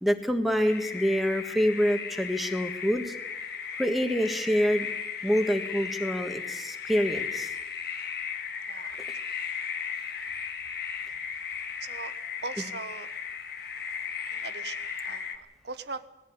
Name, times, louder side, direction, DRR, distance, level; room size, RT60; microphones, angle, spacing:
voice 1, 0.0-3.1 3.7-4.9 5.2-7.5, equal, ahead, 5 dB, 1.4 m, -26 dB
sound 1, 0.7-15.4, left 6 dB, 55° left, 1.8 m, -36 dB
voice 2, 8.7-9.1 11.8-12.1 12.4-13.1 14.3-16.1, right 4 dB, 60° right, 12 dB, 1.2 m, -40 dB
20.5 x 15.0 x 9.6 m, 0.99 s
head